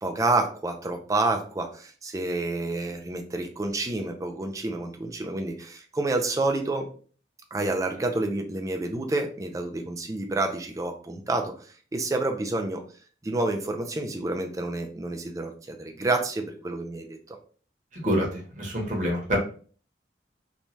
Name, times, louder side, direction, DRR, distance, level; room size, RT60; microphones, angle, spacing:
voice 1, 0.0-6.9 7.5-12.8 13.2-17.4, right 2 dB, 20° right, 4 dB, 0.3 m, -29 dB
voice 2, 17.9-19.4, equal, 45° right, -1 dB, 0.9 m, -27 dB
3.0 x 2.2 x 2.6 m, 0.42 s
head